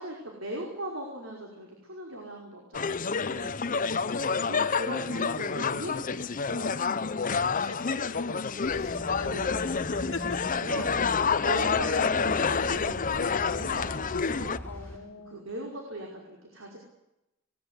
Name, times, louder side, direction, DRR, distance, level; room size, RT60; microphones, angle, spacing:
voice 1, 0.0-3.5 4.0-4.2 4.4-7.7 9.2-9.7 10.0-10.2 10.6-14.8 15.3-16.8, right 1 dB, 75° right, 0 dB, 5.3 m, -40 dB
sound 1, 2.7-14.6, left 5 dB, 40° left, 0.7 m, -28 dB
voice 2, 3.7-4.0 7.5-9.6 10.1-10.4 11.1-11.2 11.5-11.8 14.6-15.5, left 3 dB, 80° left, 1 dB, 1.6 m, -43 dB
sound 2, 8.6-15.0, equal, 10° left, 6.4 m, -41 dB
20.5 x 20.5 x 8.3 m, 0.89 s
head